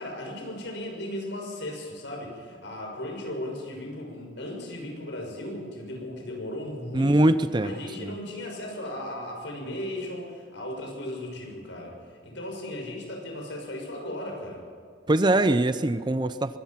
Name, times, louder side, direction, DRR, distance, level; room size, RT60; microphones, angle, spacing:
voice 1, 0.0-7.1 7.6-12.0 12.2-14.6, left 1 dB, 70° left, 1 dB, 6.4 m, -36 dB
voice 2, 6.9-8.1 15.1-16.6, right 1 dB, 25° right, 12 dB, 0.6 m, -23 dB
23.5 x 19.5 x 5.9 m, 2.2 s
head